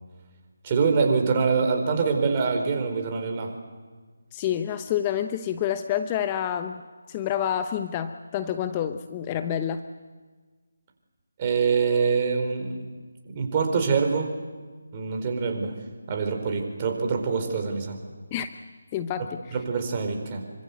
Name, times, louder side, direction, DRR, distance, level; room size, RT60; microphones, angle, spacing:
voice 1, 0.6-3.5 11.4-12.9 13.2-14.3 14.9-15.8 16.1-18.0 19.2-20.5, right 5 dB, 30° right, 4 dB, 4.4 m, -25 dB
voice 2, 4.3-6.8 7.1-9.8 18.3-18.5 18.9-19.4, left 10 dB, 20° left, 9 dB, 0.9 m, -28 dB
27.0 x 24.5 x 8.2 m, 1.4 s
figure-of-eight pair, 155°, 0 cm